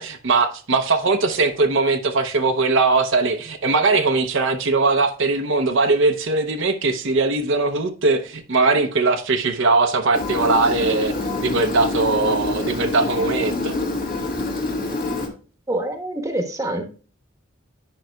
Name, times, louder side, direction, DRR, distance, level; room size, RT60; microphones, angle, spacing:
voice 1, 0.0-11.1 11.4-13.7, right 3 dB, 65° right, 0.8 m, -20 dB
Engine, 10.1-15.3, left 2 dB, 45° left, 1.9 m, -26 dB
voice 2, 15.7-16.8, right 1 dB, 15° right, 1.1 m, -25 dB
10.5 x 5.5 x 2.3 m
head